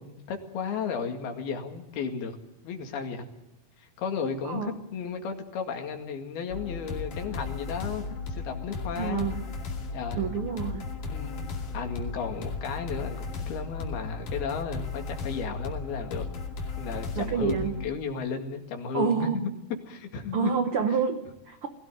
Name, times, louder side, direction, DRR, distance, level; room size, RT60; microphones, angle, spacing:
voice 1, 0.0-2.4 2.6-3.3 3.8-8.1 8.3-9.3 9.9-10.3 11.1-11.5 11.7-16.3 16.8-20.5, left 6 dB, 80° left, 4 dB, 4.1 m, -34 dB
voice 2, 4.4-4.8 9.0-9.4 10.2-10.9 17.1-17.7 18.9-19.4 20.3-21.7, right 7 dB, 85° right, 7 dB, 1.2 m, -28 dB
sound 1, 6.5-17.9, left 4 dB, 60° left, 3.9 m, -35 dB
21.5 x 17.0 x 9.3 m, 0.98 s
omnidirectional pair, 4.4 m